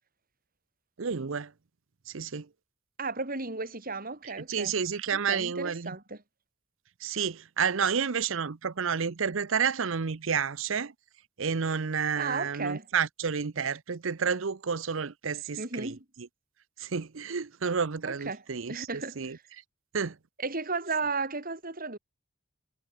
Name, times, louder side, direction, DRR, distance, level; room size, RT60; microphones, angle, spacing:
voice 1, 1.0-1.5 2.1-2.5 4.5-6.0 7.0-10.9 11.4-16.3 16.8-19.4 19.9-20.2, right 6 dB, 65° right, 0.7 m, -30 dB
voice 2, 3.0-4.7 5.1-6.2 12.2-12.9 15.6-16.0 18.0-18.4 18.7-19.4 20.4-22.0, right 3 dB, 45° right, 4.3 m, -34 dB
head